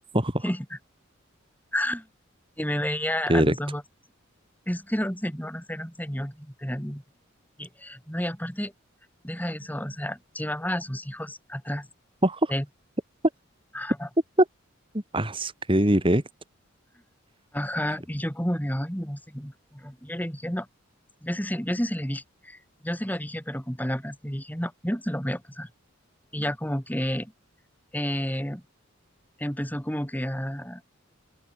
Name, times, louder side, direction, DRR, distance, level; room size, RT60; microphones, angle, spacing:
voice 1, 1.7-2.1 2.6-3.8 4.7-7.0 7.6-8.7 9.2-11.9 12.5-12.6 13.7-14.1 17.5-20.7 21.2-25.7 26.3-27.3 27.9-28.6 29.4-31.0, equal, 10° left, 7.6 m, -30 dB
voice 2, 14.9-16.2, right 1 dB, 25° right, 3.0 m, -23 dB
open air
head